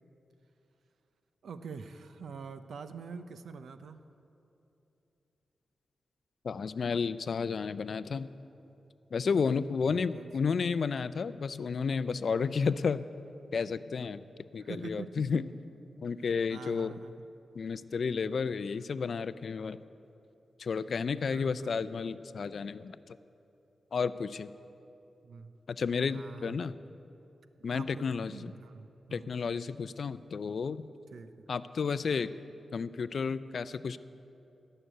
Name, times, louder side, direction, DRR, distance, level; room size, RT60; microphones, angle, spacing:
voice 1, 1.4-4.0 9.8-10.5 14.6-15.4 16.5-17.1 21.1-21.8 25.2-25.5 26.0-26.7 27.7-29.3 31.1-31.4, right 5 dB, 80° right, 10 dB, 0.7 m, -45 dB
voice 2, 6.4-8.3 9.1-13.0 13.5-14.2 14.5-15.5 16.0-17.0 17.6-19.8 20.6-23.2 23.9-24.5 25.7-26.7 27.6-28.5 29.1-30.8 31.5-32.3 32.7-34.0, left 5 dB, 65° left, 15 dB, 0.4 m, -32 dB
18.0 x 6.7 x 9.0 m, 2.9 s
cardioid pair, 85°, 0 cm